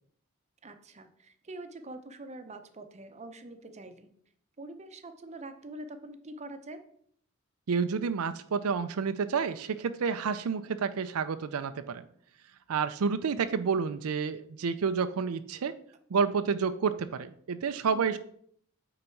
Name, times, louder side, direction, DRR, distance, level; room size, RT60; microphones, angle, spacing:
voice 1, 0.6-4.1 4.6-6.8 17.9-18.2, right 2 dB, 30° right, 8 dB, 0.7 m, -45 dB
voice 2, 7.7-12.0 12.7-15.7 16.1-18.2, right 5 dB, 85° right, 11 dB, 0.5 m, -29 dB
8.9 x 4.0 x 4.5 m, 0.63 s
head